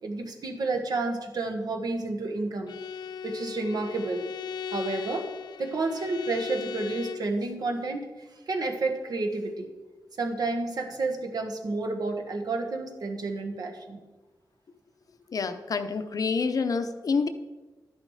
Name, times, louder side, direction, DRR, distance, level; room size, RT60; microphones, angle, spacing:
voice 1, 0.0-2.8 3.2-4.3 4.7-5.3 5.6-9.7 10.2-14.0, right 3 dB, 65° right, 4 dB, 1.5 m, -30 dB
Bowed string instrument, 2.7-7.3, left 7 dB, 80° left, 0.3 m, -38 dB
voice 2, 15.3-17.3, left 5 dB, 55° left, 9 dB, 0.8 m, -27 dB
12.0 x 9.9 x 4.9 m, 1.2 s
wide cardioid pair, 150°, 7 cm